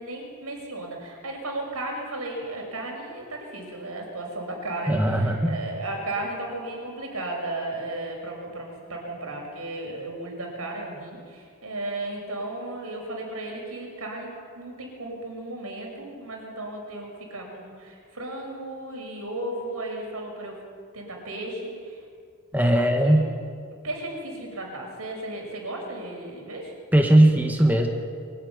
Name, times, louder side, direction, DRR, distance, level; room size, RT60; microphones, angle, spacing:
voice 1, 0.0-14.3 14.5-20.6 20.9-22.0 22.7-23.2 23.8-26.7, right 2 dB, 85° right, 0 dB, 6.0 m, -35 dB
voice 2, 4.9-5.6 22.5-23.4 26.9-27.9, right 1 dB, 10° right, 2 dB, 1.5 m, -19 dB
23.5 x 13.0 x 9.6 m, 2.2 s
head